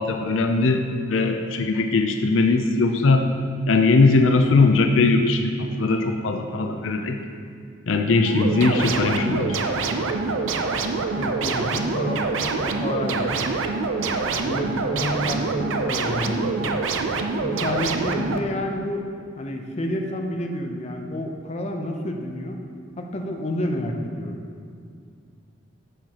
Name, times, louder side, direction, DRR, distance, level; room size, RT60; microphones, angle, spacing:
voice 1, 0.0-3.3 3.7-7.2 7.9-9.9, left 3 dB, 80° left, 5 dB, 0.5 m, -20 dB
sound 1, 8.3-18.4, right 4 dB, 80° right, 0.5 m, -25 dB
voice 2, 11.1-13.4 14.4-16.7 17.4-19.1 19.4-22.6 23.0-24.4, left 1 dB, 35° left, 3 dB, 0.6 m, -29 dB
9.9 x 6.5 x 2.9 m, 2.3 s
head